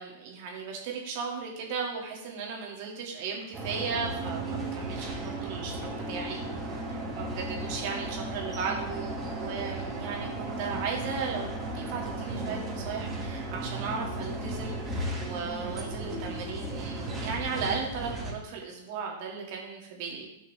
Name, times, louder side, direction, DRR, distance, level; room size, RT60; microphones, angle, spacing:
voice 1, 0.0-6.4 6.9-11.5 11.7-20.3, right 5 dB, 50° right, 0 dB, 2.2 m, -36 dB
sound 1, 3.5-18.3, right 2 dB, 20° right, 1.9 m, -35 dB
10.0 x 5.5 x 3.4 m, 0.87 s
figure-of-eight pair, 100°, 0 cm